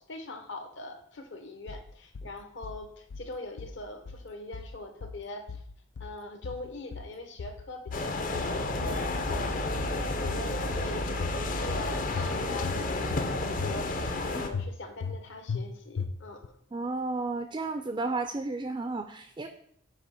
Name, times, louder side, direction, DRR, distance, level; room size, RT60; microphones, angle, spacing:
voice 1, 0.0-5.6 6.0-13.9 14.2-16.5, left 2 dB, 60° left, 6 dB, 0.9 m, -42 dB
sound 1, 1.7-2.3 2.6-3.3 3.6-4.3 4.5-5.2 5.5-6.2 6.4-7.1 7.4-8.1 8.3-9.0 9.3-10.0 10.2-10.9 11.2-11.8 12.1-12.8 13.1-13.7 14.0-14.2 14.5-15.2 15.5-15.6 16.0-16.5, left 5 dB, 90° left, 0.5 m, -37 dB
sound 2, 7.9-14.5, left 3 dB, 40° left, 0.5 m, -32 dB
sound 3, 8.5-14.5, right 2 dB, 65° right, 0.6 m, -39 dB
voice 2, 16.7-19.5, right 3 dB, 20° right, 6 dB, 0.3 m, -32 dB
8.2 x 2.9 x 5.6 m, 0.68 s
head